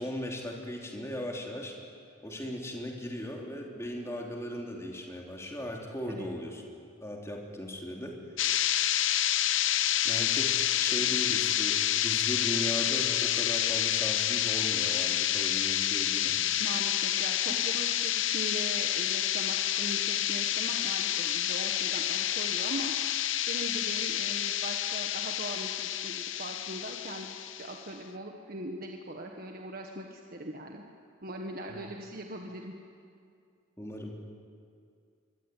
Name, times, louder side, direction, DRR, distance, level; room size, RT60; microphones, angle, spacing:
voice 1, 0.0-1.7 2.2-6.6 7.0-8.2 9.3-9.5 10.0-16.4 17.5-17.6 31.7-31.8 33.8-34.2, equal, 15° left, 0 dB, 3.4 m, -38 dB
sound 1, 8.4-27.8, left 12 dB, 70° left, 0.8 m, -29 dB
voice 2, 16.6-22.9 23.5-27.3 27.6-30.8 31.2-32.7, right 1 dB, 45° right, 2 dB, 1.6 m, -40 dB
25.0 x 23.5 x 9.4 m, 2.4 s
head